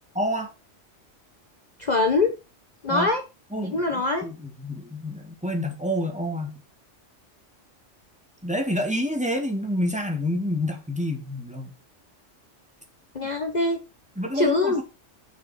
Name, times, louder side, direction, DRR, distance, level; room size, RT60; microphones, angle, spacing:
voice 1, 0.2-0.5 2.9-3.1 3.5-6.6 8.4-11.7 14.2-14.8, equal, 5° right, 4 dB, 1.9 m, -28 dB
voice 2, 1.8-2.3 2.8-3.2 3.7-4.3 13.1-13.8 14.3-14.8, left 3 dB, 40° left, 5 dB, 1.1 m, -23 dB
7.3 x 6.1 x 6.1 m, 0.29 s
omnidirectional pair, 1.3 m